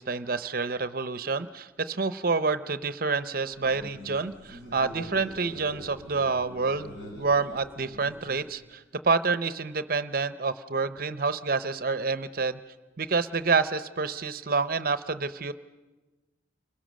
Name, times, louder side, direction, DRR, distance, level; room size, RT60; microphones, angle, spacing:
voice 1, 0.0-12.6 13.0-15.5, right 4 dB, 50° right, 13 dB, 0.7 m, -28 dB
sound 1, 3.5-8.6, equal, 80° left, 7.0 m, -44 dB
29.5 x 22.0 x 6.3 m, 1.2 s
head